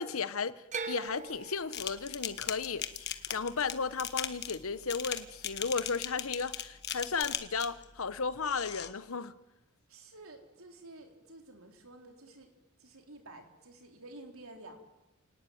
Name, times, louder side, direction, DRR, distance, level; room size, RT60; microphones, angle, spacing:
voice 1, 0.0-9.3, left 5 dB, 70° left, 1.0 m, -35 dB
sound 1, 0.7-4.9 5.2-5.9 7.2-7.3, right 4 dB, 30° right, 1.0 m, -43 dB
sound 2, 1.7-7.8 8.4-8.9, left 10 dB, 50° left, 1.4 m, -38 dB
voice 2, 9.9-12.5 12.8-14.8, right 2 dB, 70° right, 4.0 m, -51 dB
28.5 x 19.0 x 9.3 m
head